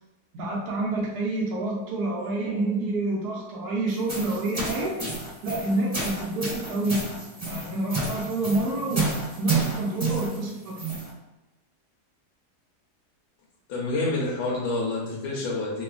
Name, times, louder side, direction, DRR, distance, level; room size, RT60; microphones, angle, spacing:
voice 1, 0.3-4.9 5.4-7.1 7.5-9.1 9.4-10.8, right 2 dB, 75° right, -3 dB, 1.2 m, -28 dB
sound 1, 3.9-11.1, right 3 dB, 35° right, 1.4 m, -30 dB
voice 2, 13.7-15.8, left 2 dB, 70° left, -4 dB, 0.8 m, -28 dB
3.0 x 2.1 x 2.4 m, 1.0 s
omnidirectional pair, 1.8 m